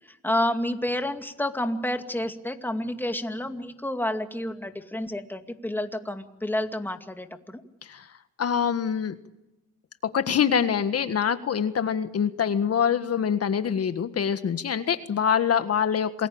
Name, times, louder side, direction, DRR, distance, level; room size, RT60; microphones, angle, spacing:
voice 1, 0.1-7.6, left 1 dB, 5° left, 7 dB, 2.3 m, -29 dB
voice 2, 8.4-9.2 10.1-16.3, left 7 dB, 50° left, 10 dB, 1.7 m, -25 dB
28.0 x 20.5 x 8.8 m, 0.94 s
cardioid pair, 90°, 30 cm